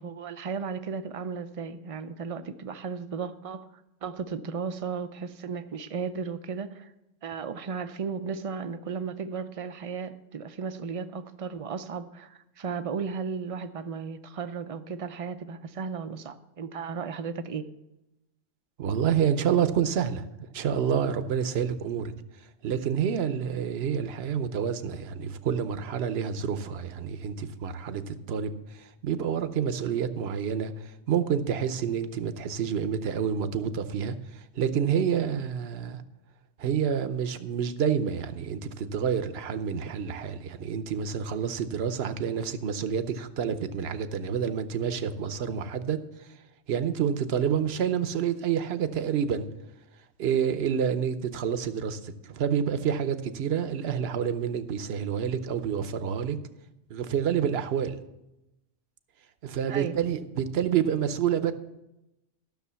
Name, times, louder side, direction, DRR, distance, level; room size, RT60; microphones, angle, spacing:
voice 1, 0.0-3.7 4.0-6.9 7.2-17.6 59.7-60.0, right 5 dB, 40° right, 10 dB, 0.5 m, -35 dB
voice 2, 18.8-20.2 20.5-22.1 22.6-36.0 36.6-46.0 46.7-49.5 50.2-56.4 56.9-58.0 59.4-61.5, right 8 dB, 60° right, 11 dB, 0.9 m, -28 dB
13.0 x 6.6 x 6.9 m, 0.92 s
omnidirectional pair, 1.3 m